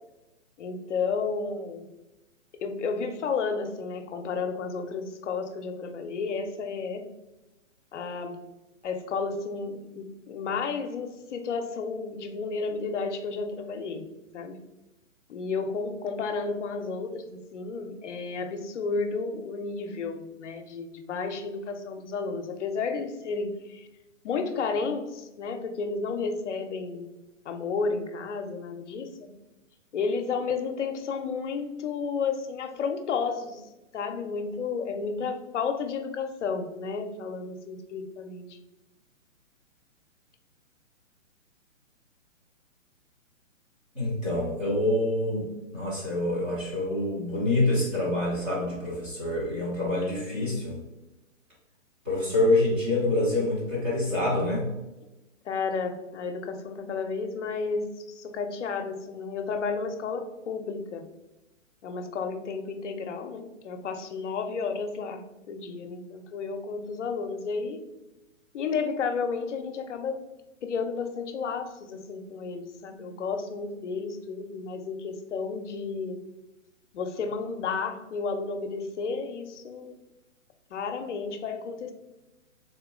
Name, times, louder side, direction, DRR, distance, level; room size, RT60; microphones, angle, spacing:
voice 1, 0.6-1.9 2.6-7.1 7.9-8.4 8.8-14.0 14.3-14.6 15.3-23.9 24.2-27.1 27.5-29.3 29.9-33.6 33.9-38.6 52.1-52.3 55.4-61.1 61.8-67.8 68.5-70.2 70.6-76.2 76.9-80.0 80.7-81.9, left 4 dB, 60° left, 7 dB, 0.6 m, -32 dB
voice 2, 43.9-45.5 45.7-50.8 52.1-54.7, left 2 dB, 10° right, -6 dB, 0.4 m, -26 dB
3.7 x 2.8 x 3.6 m, 1.0 s
hypercardioid pair, 140°, 40 cm